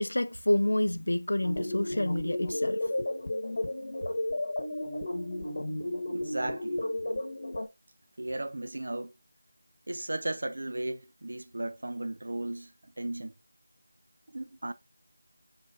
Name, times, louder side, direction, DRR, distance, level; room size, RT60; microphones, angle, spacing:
voice 1, 0.0-3.1, left 1 dB, 75° left, 0.4 m, -28 dB
sound 1, 1.4-7.7, left 1 dB, 55° left, 1.1 m, -33 dB
voice 2, 6.1-6.8 8.2-9.1 9.9-13.3 14.3-14.7, right 1 dB, 65° right, 0.5 m, -35 dB
7.2 x 2.7 x 2.4 m
figure-of-eight pair, 170°, 0 cm